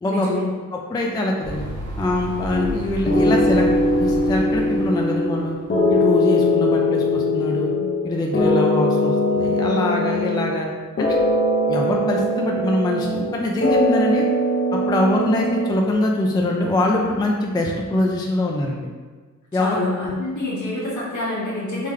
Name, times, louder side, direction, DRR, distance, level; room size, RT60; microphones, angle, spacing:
voice 1, 0.0-0.4 19.6-21.9, left 2 dB, 65° left, -7 dB, 1.5 m, -26 dB
voice 2, 0.7-1.6 2.0-5.6 5.9-7.7 8.0-10.7 11.0-11.2 11.7-14.3 14.7-18.9 19.5-19.8, left 1 dB, 15° left, 0 dB, 0.3 m, -23 dB
sound 1, 1.4-5.7, equal, 70° right, 1.0 m, -33 dB
sound 2, 2.5-2.8 3.1-5.4 5.7-8.0 8.3-10.7 11.0-13.3 13.6-15.9, left 1 dB, 40° left, 0.6 m, -20 dB
3.6 x 3.3 x 3.2 m, 1.4 s
wide cardioid pair, 145°, 32 cm